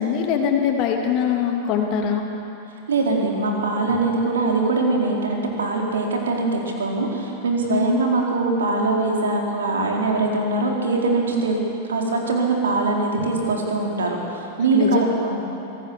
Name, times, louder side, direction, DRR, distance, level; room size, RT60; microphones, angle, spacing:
voice 1, 0.0-2.2 7.7-7.8 14.7-15.0, left 8 dB, 40° left, 2 dB, 3.2 m, -22 dB
voice 2, 2.9-11.6 11.9-15.4, right 3 dB, 70° right, 0 dB, 4.1 m, -22 dB
26.0 x 18.0 x 7.3 m, 2.9 s
figure-of-eight pair, 95°, 0 cm